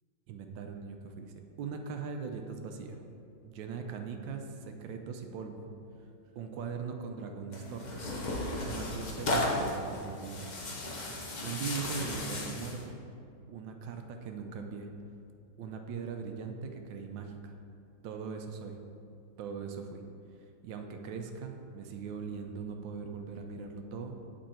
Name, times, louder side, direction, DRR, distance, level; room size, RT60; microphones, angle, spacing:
voice 1, 0.3-3.0 3.4-5.7 6.3-8.2 8.6-10.5 11.4-13.0 13.5-14.9 15.6-17.6 18.0-18.8 19.4-20.0 20.6-24.1, right 5 dB, 85° right, 4 dB, 1.3 m, -40 dB
Tearing, 7.5-12.8, left 1 dB, 55° left, 0.4 m, -35 dB
7.7 x 4.6 x 4.4 m, 2.5 s
omnidirectional pair, 2.0 m